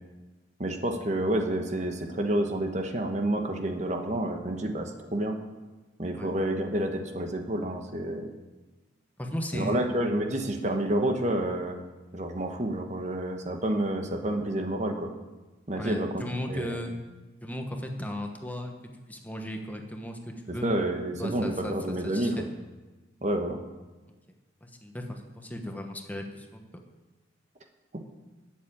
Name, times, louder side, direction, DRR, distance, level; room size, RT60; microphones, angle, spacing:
voice 1, 0.6-5.4 6.0-8.3 9.5-11.8 12.1-15.1 15.7-16.8 20.5-22.5 23.2-23.6, right 1 dB, 40° right, 4 dB, 1.2 m, -29 dB
voice 2, 9.2-9.9 15.8-16.9 17.4-18.7 19.1-20.7 21.2-22.4 24.6-26.8, left 1 dB, 10° left, 3 dB, 1.1 m, -36 dB
12.5 x 7.5 x 8.5 m, 1.2 s
head